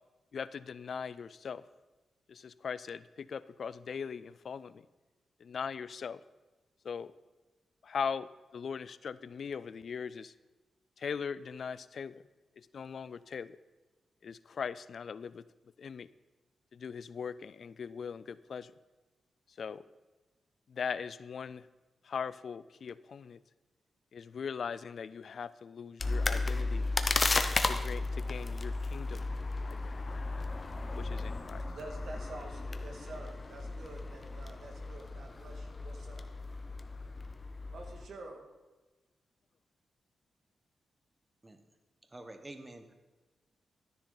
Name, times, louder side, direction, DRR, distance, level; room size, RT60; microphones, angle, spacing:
voice 1, 0.3-1.6 2.3-4.9 5.4-6.2 6.8-7.1 7.8-10.3 11.0-12.2 12.6-13.6 14.2-15.5 15.8-16.1 16.7-18.7 19.6-19.8 20.7-21.7 22.0-23.4 24.1-26.9 27.7-29.3 29.6-30.1 30.9-31.7, left 6 dB, 65° left, 17 dB, 0.3 m, -40 dB
sound 1, 26.0-38.1, left 3 dB, 35° left, 0.8 m, -34 dB
voice 2, 31.7-36.3 37.7-38.4, right 2 dB, 70° right, 2 dB, 2.0 m, -48 dB
voice 3, 42.1-42.9, right 1 dB, 20° right, 7 dB, 1.1 m, -48 dB
13.0 x 10.0 x 4.0 m, 1.2 s
cardioid pair, 90°, 0 cm